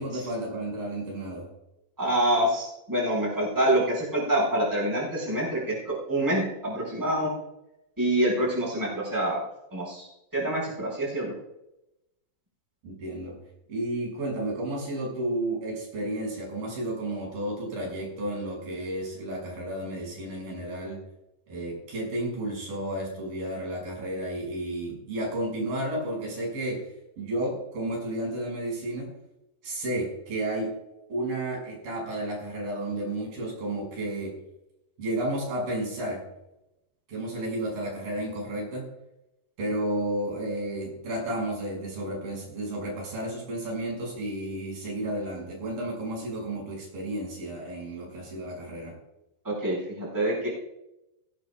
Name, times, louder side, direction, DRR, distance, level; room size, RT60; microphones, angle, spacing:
voice 1, 0.0-1.5 12.8-13.4 13.7-21.0 21.5-26.9 27.2-29.2 29.6-30.7 31.1-34.4 35.0-36.2 37.1-38.9 39.6-49.0, right 1 dB, 75° right, -1 dB, 7.8 m, -32 dB
voice 2, 2.0-7.3 8.0-9.4 9.7-11.3 49.4-50.5, right 1 dB, 5° right, -4 dB, 4.7 m, -26 dB
18.5 x 16.5 x 2.4 m, 0.90 s
omnidirectional pair, 4.1 m